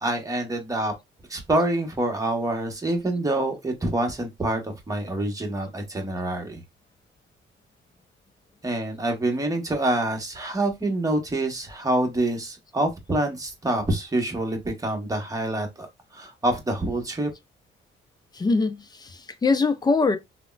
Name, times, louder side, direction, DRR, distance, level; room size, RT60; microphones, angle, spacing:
voice 1, 0.0-0.9 1.3-6.6 8.6-15.9 16.1-17.3, right 1 dB, 15° right, 1.0 m, -26 dB
voice 2, 18.3-20.2, left 4 dB, 20° left, 0.5 m, -23 dB
3.5 x 2.1 x 2.3 m
cardioid pair, 90°, 20 cm